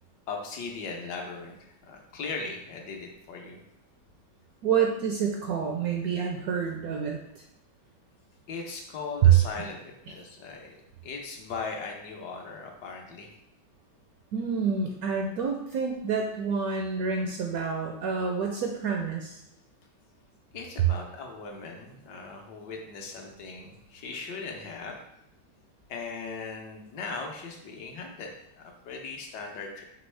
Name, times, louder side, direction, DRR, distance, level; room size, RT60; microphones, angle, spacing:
voice 1, 0.3-3.6 8.5-10.8 11.0-13.3 20.5-25.0 25.9-29.8, left 4 dB, 70° left, 1 dB, 1.3 m, -38 dB
voice 2, 4.6-7.2 9.2-9.3 14.3-19.4, right 7 dB, 75° right, 2 dB, 0.9 m, -27 dB
5.3 x 3.0 x 3.2 m, 0.79 s
omnidirectional pair, 1.9 m